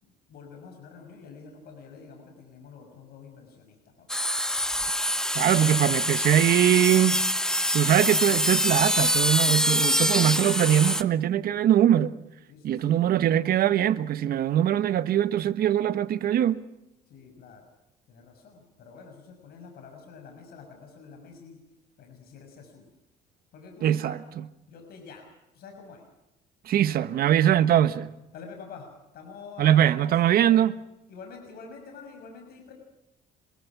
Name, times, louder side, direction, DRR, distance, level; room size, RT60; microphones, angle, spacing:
voice 1, 0.0-4.1 12.5-13.1 17.1-17.6 18.1-21.6 22.0-22.9 23.5-24.2 24.7-25.2 25.5-26.1 28.3-28.9 29.1-30.8 31.1-32.7, left 5 dB, 65° left, 6.2 m, -47 dB
sound 1, 4.1-11.0, left 1 dB, 5° left, 1.2 m, -25 dB
voice 2, 5.3-7.2 7.7-12.1 12.6-16.6 23.8-24.2 26.7-28.1 29.6-30.7, right 11 dB, 60° right, 1.3 m, -22 dB
27.0 x 22.5 x 6.1 m
cardioid pair, 110°, 17 cm